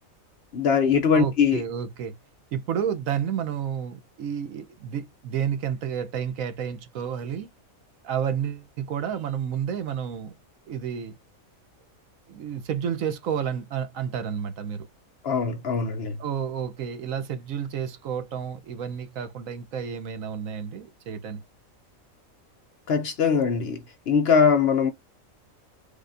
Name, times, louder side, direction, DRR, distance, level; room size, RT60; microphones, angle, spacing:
voice 1, 0.5-1.6 15.2-16.2 22.9-24.9, left 6 dB, 60° left, 0.8 m, -22 dB
voice 2, 1.1-2.1 2.5-7.5 8.0-10.3 10.7-11.1 12.3-14.9 16.2-21.4, right 8 dB, 75° right, 1.2 m, -30 dB
6.4 x 2.3 x 2.6 m
omnidirectional pair, 1.4 m